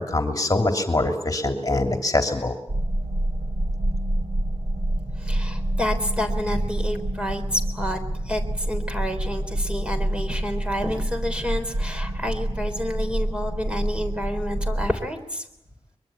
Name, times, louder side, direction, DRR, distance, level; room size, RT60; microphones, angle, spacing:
voice 1, 0.0-2.5, left 2 dB, 35° left, 4 dB, 3.0 m, -23 dB
sound 1, 2.7-14.9, right 1 dB, 60° right, 3.7 m, -27 dB
voice 2, 5.2-8.0 8.2-15.5, equal, 10° right, 6 dB, 3.7 m, -29 dB
24.0 x 22.5 x 8.7 m, 0.80 s
wide cardioid pair, 80°, 11 cm